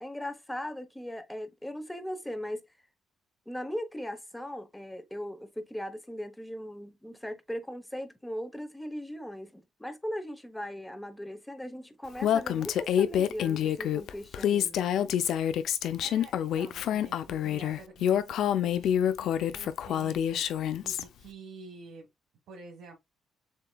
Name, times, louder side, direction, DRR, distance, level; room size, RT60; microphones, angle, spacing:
voice 1, 0.0-2.6 3.5-15.2, equal, 5° left, 0.9 m, -39 dB
Female speech woman speaking, 12.2-21.0, left 9 dB, 75° left, 0.5 m, -27 dB
voice 2, 16.0-22.1 22.5-23.0, right 3 dB, 85° right, 1.3 m, -48 dB
7.2 x 2.8 x 2.2 m
cardioid pair, 90°, 0 cm